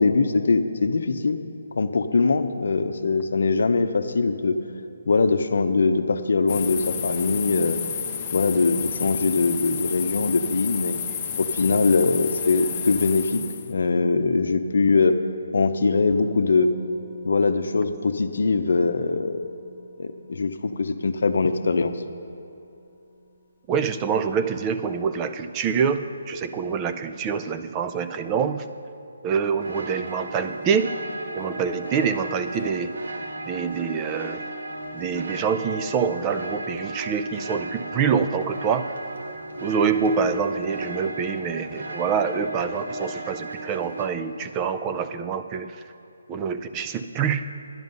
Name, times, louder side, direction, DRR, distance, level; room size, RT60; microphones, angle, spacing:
voice 1, 0.0-1.4 1.7-4.6 5.1-7.8 8.3-11.0 11.4-15.2 15.5-16.7 17.2-19.5 20.0-21.9, left 4 dB, 65° left, 8 dB, 0.7 m, -22 dB
sound 1, 6.5-13.7, left 7 dB, 20° left, 0.8 m, -31 dB
Musical instrument, 16.1-24.0 24.3-24.4, right 1 dB, 30° right, 2.3 m, -48 dB
voice 2, 23.7-28.6 29.2-31.0 31.3-32.9 33.5-34.4 34.9-38.9 39.6-45.8 46.3-47.5, right 6 dB, 15° right, 10 dB, 0.4 m, -26 dB
sound 2, 29.6-44.1, right 1 dB, 85° right, 1.4 m, -35 dB
11.0 x 10.5 x 5.4 m, 2.8 s
hypercardioid pair, 170°, 0 cm